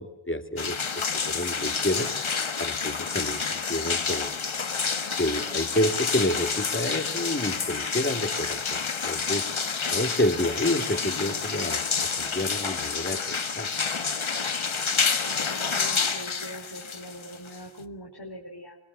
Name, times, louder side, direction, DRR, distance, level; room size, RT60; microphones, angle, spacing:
voice 1, 0.0-2.1 2.6-4.4 5.2-9.5 9.9-13.7, left 1 dB, 25° left, 6 dB, 2.6 m, -29 dB
sound 1, 0.6-17.8, left 5 dB, 85° left, 1.5 m, -29 dB
voice 2, 5.0-5.6 15.2-18.8, equal, 55° left, 0 dB, 4.4 m, -42 dB
24.5 x 22.0 x 8.4 m, 0.75 s
wide cardioid pair, 60°, 46 cm